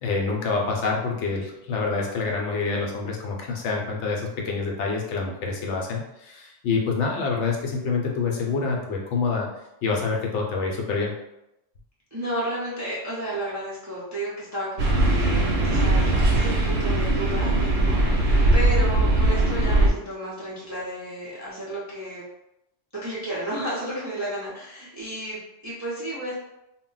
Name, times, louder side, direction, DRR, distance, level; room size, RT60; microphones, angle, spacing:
voice 1, 0.0-9.5 9.8-11.1, left 4 dB, 75° left, 0 dB, 0.9 m, -27 dB
voice 2, 12.1-22.2 23.0-26.3, right 1 dB, 25° right, -7 dB, 0.3 m, -32 dB
sound 1, 14.8-19.9, right 2 dB, 70° right, 0.8 m, -20 dB
2.2 x 2.1 x 3.8 m, 0.88 s
omnidirectional pair, 1.3 m